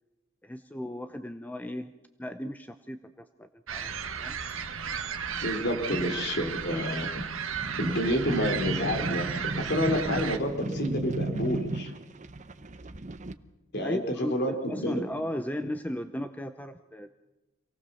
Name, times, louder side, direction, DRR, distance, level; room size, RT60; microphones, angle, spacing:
voice 1, 0.4-1.9 2.2-4.4 13.8-17.1, left 1 dB, 10° left, 10 dB, 0.7 m, -36 dB
sound 1, 3.7-10.4, right 7 dB, 70° right, 1.7 m, -34 dB
voice 2, 5.4-7.1 7.8-11.9 13.7-15.0, equal, 50° left, 4 dB, 3.9 m, -29 dB
sound 2, 7.5-13.3, right 2 dB, 35° right, 0.8 m, -35 dB
26.5 x 18.0 x 7.0 m, 1.1 s
head